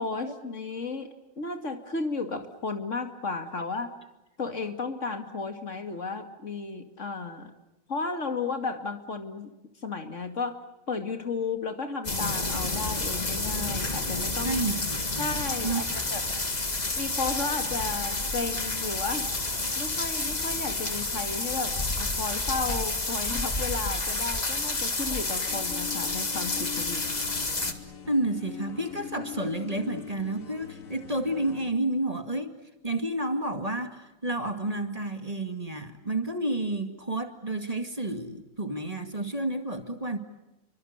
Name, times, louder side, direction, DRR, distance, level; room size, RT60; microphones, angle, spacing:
voice 1, 0.0-3.9 4.4-7.5 7.9-9.5 9.8-10.6 10.9-14.6 15.2-16.2 17.0-19.3 19.8-27.2, left 4 dB, 60° left, 6 dB, 2.8 m, -33 dB
sound 1, 12.0-27.7, left 2 dB, 30° left, 2.0 m, -30 dB
voice 2, 14.4-15.3 15.6-15.8 28.1-32.5 32.8-40.2, right 1 dB, 25° right, 7 dB, 2.2 m, -30 dB
sound 2, 25.2-31.7, left 9 dB, 90° left, 2.0 m, -42 dB
28.5 x 24.5 x 8.1 m, 0.95 s
omnidirectional pair, 1.4 m